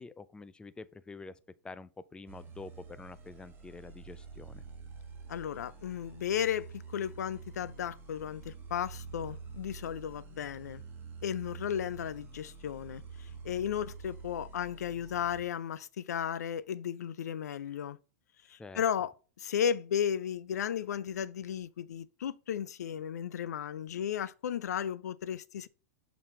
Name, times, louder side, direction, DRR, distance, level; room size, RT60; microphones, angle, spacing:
voice 1, 0.0-4.6 18.6-18.8, left 3 dB, 10° left, 0.5 m, -47 dB
sound 1, 2.3-15.4, right 5 dB, 25° right, 2.2 m, -47 dB
voice 2, 5.3-10.8 11.2-18.0 18.5-19.1 19.4-25.7, left 9 dB, 75° left, 0.5 m, -34 dB
6.6 x 4.0 x 4.3 m
hypercardioid pair, 105°, 9 cm